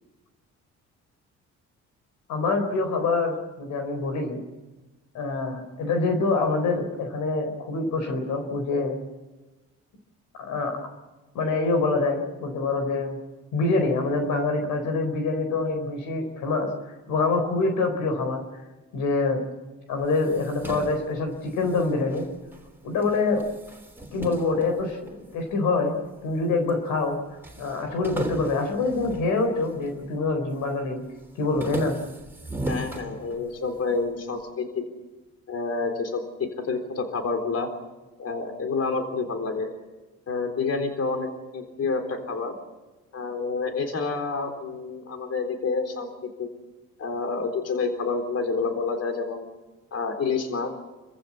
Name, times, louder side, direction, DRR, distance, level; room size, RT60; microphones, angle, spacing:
voice 1, 2.3-4.4 5.1-9.0 10.4-10.8 11.3-13.2 13.5-16.7 17.1-18.4 18.9-19.4 19.9-22.2 22.8-23.4 24.1-25.9 26.2-27.2 27.6-31.0 31.4-32.0, left 3 dB, 90° left, 5 dB, 4.1 m, -25 dB
sound 1, 20.0-22.7 23.0-25.5 26.1-26.8 27.1-27.2 27.4-30.0 30.4-30.8 31.2-33.8, right 1 dB, 5° right, 3.3 m, -37 dB
voice 2, 32.7-34.8 35.5-37.7 38.2-39.7 40.3-41.3 41.5-42.5 43.1-46.5 47.0-49.5 49.9-50.7, left 4 dB, 55° left, 5 dB, 3.9 m, -28 dB
27.5 x 15.0 x 8.5 m, 1.2 s
cardioid pair, 90°, 30 cm